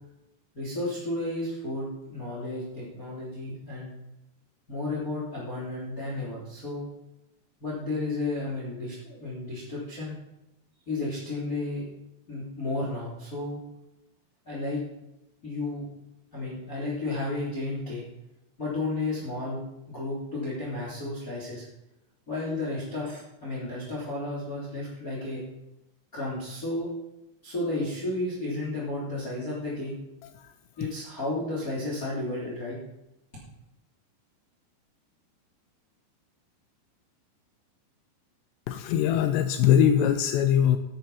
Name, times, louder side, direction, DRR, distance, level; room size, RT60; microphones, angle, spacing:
voice 1, 0.5-3.9 4.7-6.9 7.6-10.1 10.9-11.9 12.3-13.6 14.4-14.8 15.4-15.9 16.3-18.0 18.6-19.6 19.9-21.6 22.3-25.4 26.1-26.9 27.4-29.9 30.8-32.8, left 2 dB, 25° left, -5 dB, 2.9 m, -32 dB
voice 2, 38.7-40.8, left 9 dB, 85° left, 8 dB, 2.8 m, -21 dB
10.0 x 9.0 x 5.4 m, 0.89 s
omnidirectional pair, 5.0 m